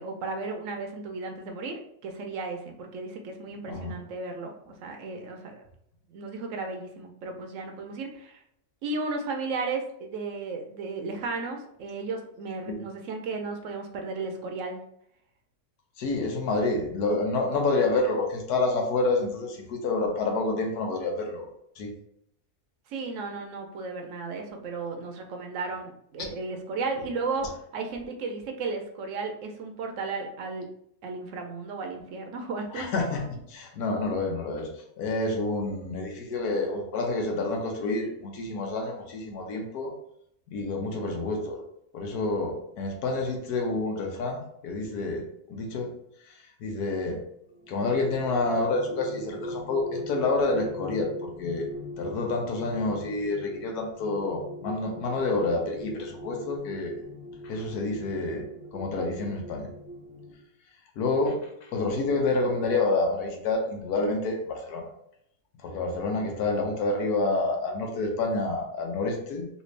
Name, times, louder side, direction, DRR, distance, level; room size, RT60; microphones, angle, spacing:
voice 1, 0.0-5.6 6.1-8.4 8.8-14.8 22.9-30.7 31.0-32.9, right 3 dB, 65° right, 4 dB, 0.9 m, -34 dB
voice 2, 3.6-3.9 12.7-12.8 16.0-21.5 21.8-21.9 32.7-34.7 35.0-39.9 40.5-41.6 41.9-45.2 45.5-45.9 46.6-47.2 47.7-51.7 52.0-57.0 57.4-58.5 58.7-59.7 61.0-61.4 61.7-64.8 65.6-69.5, left 3 dB, 80° left, 2 dB, 1.3 m, -28 dB
sound 1, 47.5-60.3, equal, 30° right, 0.3 m, -41 dB
3.3 x 2.7 x 3.2 m, 0.73 s
omnidirectional pair, 1.6 m